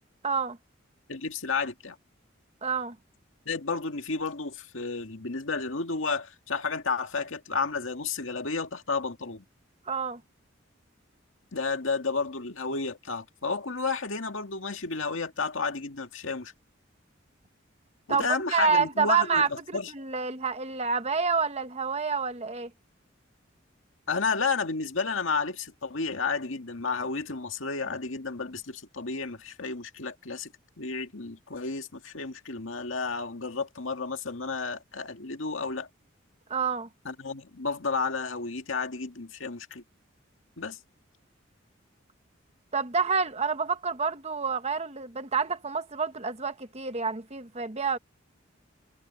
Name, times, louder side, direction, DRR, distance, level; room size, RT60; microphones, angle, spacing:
voice 1, 0.2-0.6 2.6-3.0 9.9-10.2 18.1-22.7 36.5-36.9 42.7-48.0, right 5 dB, 35° right, 1.3 m, -28 dB
voice 2, 1.1-2.0 3.5-9.4 11.5-16.5 18.1-19.9 24.1-30.5 30.8-35.9 37.1-39.8 40.6-40.8, left 4 dB, 80° left, 2.0 m, -32 dB
head